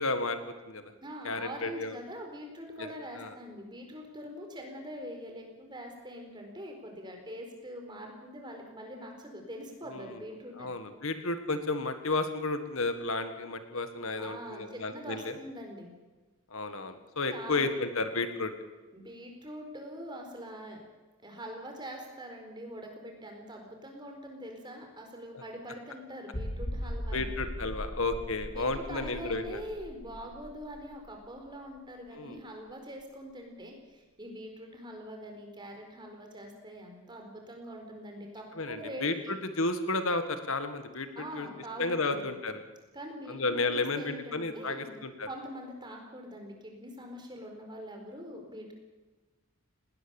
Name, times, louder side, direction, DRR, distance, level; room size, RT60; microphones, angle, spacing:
voice 1, 0.0-0.9 1.2-2.0 3.2-3.3 9.9-10.1 10.6-15.3 16.5-18.5 27.1-29.6 32.1-32.4 38.5-41.1 41.4-41.5 41.8-42.6 43.3-45.3, left 3 dB, 65° left, 9 dB, 1.7 m, -32 dB
voice 2, 1.0-10.7 14.2-15.9 17.3-17.9 18.9-20.8 21.2-27.2 28.5-39.3 41.1-42.3 42.9-44.9 45.3-48.7, equal, 20° right, 2 dB, 4.4 m, -43 dB
sound 1, 26.3-31.8 32.1-32.2 32.7-32.8, equal, 35° left, 1.8 m, -39 dB
19.5 x 19.0 x 7.2 m, 1.2 s
head